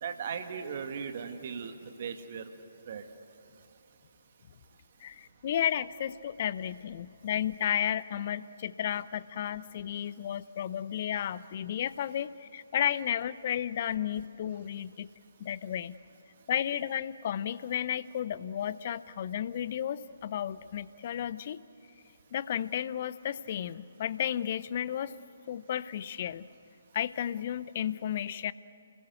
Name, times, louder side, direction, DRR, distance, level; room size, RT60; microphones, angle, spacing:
voice 1, 0.0-1.7 2.0-2.5 2.9-3.0, right 6 dB, 45° right, 6 dB, 1.9 m, -37 dB
voice 2, 5.0-15.1 15.4-16.0 16.5-21.6 22.3-25.2 25.5-26.5 26.9-28.5, left 10 dB, 40° left, 17 dB, 0.7 m, -33 dB
29.0 x 20.5 x 8.1 m, 2.7 s
figure-of-eight pair, 135°, 0 cm